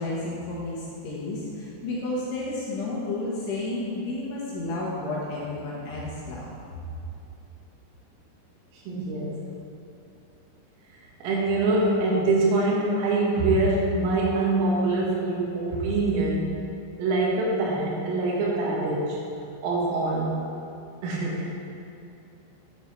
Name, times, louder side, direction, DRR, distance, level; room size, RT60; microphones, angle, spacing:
voice 1, 0.0-6.4, left 2 dB, 70° left, -6 dB, 3.7 m, -31 dB
voice 2, 8.9-9.4 11.2-16.5 17.0-19.2 19.6-20.4 21.0-21.6, right 2 dB, 80° right, -5 dB, 4.0 m, -24 dB
10.5 x 9.1 x 4.2 m, 2.7 s
omnidirectional pair, 5.9 m